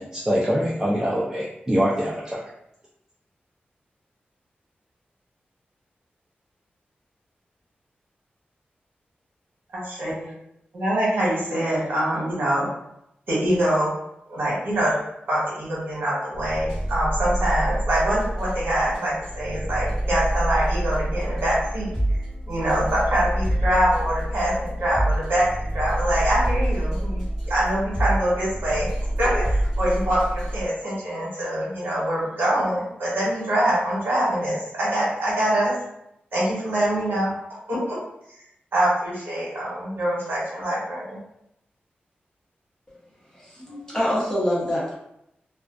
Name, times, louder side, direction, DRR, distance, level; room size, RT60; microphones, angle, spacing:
voice 1, 0.0-2.4, equal, 15° right, -6 dB, 0.3 m, -24 dB
voice 2, 9.7-10.3 10.7-12.7 13.3-13.9 14.3-15.0 15.3-21.9 22.5-28.9 29.2-35.7 36.3-37.3 37.7-38.0 38.7-41.2, right 1 dB, 75° right, -7 dB, 1.2 m, -24 dB
sound 1, 16.3-30.7, right 1 dB, ahead, 1.4 m, -27 dB
voice 3, 43.4-44.9, equal, 20° left, -7 dB, 0.9 m, -25 dB
2.3 x 2.3 x 2.4 m, 0.79 s
wide cardioid pair, 125°, 4 cm